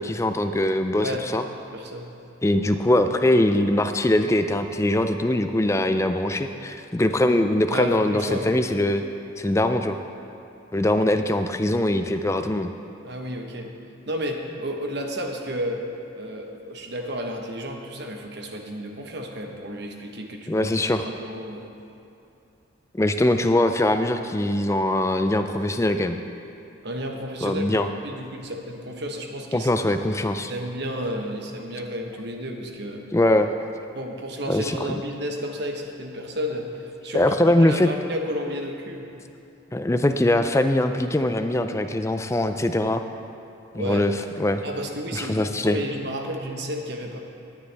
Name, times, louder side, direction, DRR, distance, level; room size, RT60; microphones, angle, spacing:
voice 1, 0.0-1.4 2.4-9.0 9.4-10.0 10.7-12.7 20.5-21.0 22.9-26.2 27.4-27.9 29.5-30.5 33.1-33.5 34.5-34.8 37.1-37.9 39.7-43.0 43.7-44.1 44.4-44.6 45.1-45.8, left 1 dB, 15° left, 8 dB, 0.4 m, -22 dB
voice 2, 1.7-2.1 7.7-8.5 13.0-13.8 14.1-15.8 16.1-20.7 21.0-21.7 26.8-29.7 30.5-33.1 33.9-37.3 37.7-39.1 43.7-44.0 44.6-45.4 45.6-47.2, equal, 55° right, 2 dB, 1.1 m, -32 dB
19.0 x 9.5 x 3.4 m, 2.7 s
head